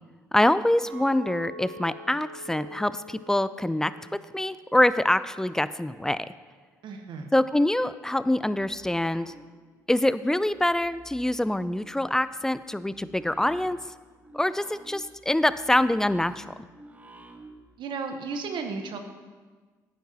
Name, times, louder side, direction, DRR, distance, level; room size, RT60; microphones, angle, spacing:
voice 1, 0.3-3.9 4.3-6.3 7.3-9.3 9.9-13.8 14.3-16.5, left 1 dB, 5° left, 15 dB, 0.4 m, -25 dB
Chink clink, 0.9-5.2 5.5-6.0, equal, 85° right, 1.3 m, -46 dB
voice 2, 6.8-7.3 17.8-19.0, right 4 dB, 60° right, 5 dB, 0.9 m, -34 dB
sound 1, 8.2-10.0 10.3-17.8, right 3 dB, 15° right, 1.1 m, -51 dB
11.5 x 9.2 x 2.8 m, 1.4 s
hypercardioid pair, 50°, 9 cm